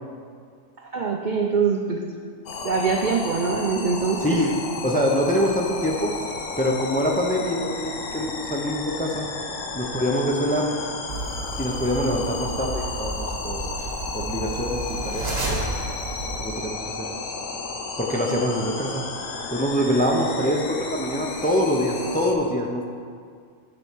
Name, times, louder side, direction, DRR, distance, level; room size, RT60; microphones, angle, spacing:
voice 1, 0.8-2.1 2.6-4.5, right 5 dB, 60° right, 1 dB, 0.5 m, -24 dB
sound 1, 2.5-22.3, left 4 dB, 60° left, 1.2 m, -33 dB
voice 2, 4.2-4.5 4.8-6.1 6.6-9.3 9.7-10.7 11.6-13.6 14.1-15.6 16.4-16.8 18.0-19.0 19.5-22.8, equal, 10° left, 0 dB, 0.5 m, -24 dB
sound 2, 11.1-16.7, right 2 dB, 45° right, 1.5 m, -32 dB
9.9 x 6.3 x 4.6 m, 2.1 s
omnidirectional pair, 1.5 m